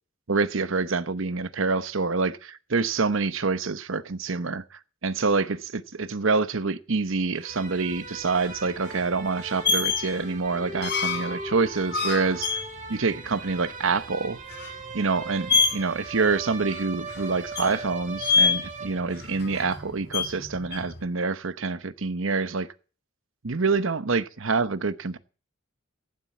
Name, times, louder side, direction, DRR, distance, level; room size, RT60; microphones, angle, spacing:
voice 1, 0.3-12.5 12.9-14.4 14.9-22.7 23.4-25.2, right 4 dB, 65° right, 0.9 m, -26 dB
sound 1, 7.3-19.4, right 3 dB, 40° right, 2.4 m, -40 dB
sound 2, 7.6-21.0, left 4 dB, 55° left, 5.8 m, -29 dB
15.0 x 7.6 x 8.3 m
head